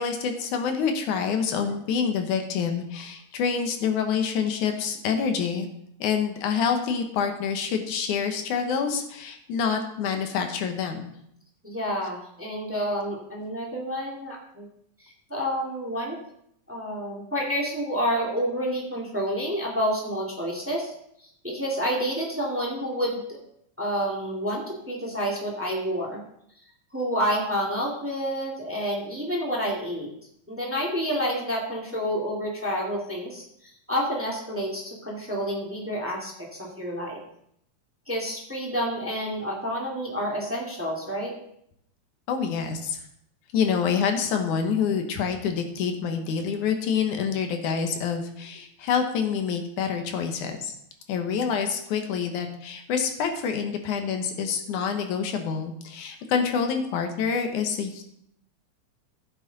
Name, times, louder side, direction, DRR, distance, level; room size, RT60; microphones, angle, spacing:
voice 1, 0.0-5.7 6.0-11.1 42.3-43.0 43.5-50.7 51.1-58.0, left 6 dB, 80° left, 5 dB, 2.6 m, -27 dB
voice 2, 11.6-14.7 15.0-16.2 16.7-20.9 21.2-23.4 23.8-26.2 26.9-30.1 30.5-37.2 38.1-41.3, equal, 5° right, -2 dB, 1.7 m, -29 dB
15.0 x 7.8 x 4.1 m, 0.74 s
omnidirectional pair, 3.4 m